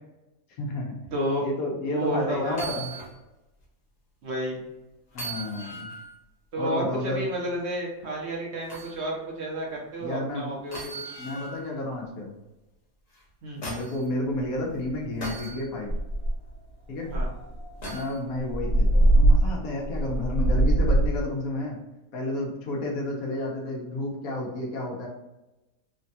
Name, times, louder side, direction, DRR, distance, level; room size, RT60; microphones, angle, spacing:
voice 1, 0.6-0.9 1.4-2.9 5.1-5.9 6.6-7.2 10.0-10.5 11.2-12.3 13.6-15.9 16.9-17.1 17.9-21.8 22.1-25.1, left 2 dB, 80° left, -1 dB, 1.2 m, -31 dB
voice 2, 1.1-1.5 1.9-2.6 4.2-4.6 6.5-10.9 11.2-11.3 13.4-13.6 17.1-17.3, right 1 dB, 60° right, -3 dB, 0.9 m, -31 dB
sound 1, 2.5-3.2 3.6-3.7 5.1-6.1 8.7-9.0 10.7-11.7 13.1-14.0 15.2-15.6 17.8-18.2 20.0-20.1, right 2 dB, 35° left, 0.7 m, -38 dB
sound 2, 14.4-14.5 14.9-15.1 15.5-15.6 15.8-16.5 17.1-21.3, right 1 dB, 55° left, 1.1 m, -22 dB
3.3 x 2.2 x 2.6 m, 1.0 s
omnidirectional pair, 1.5 m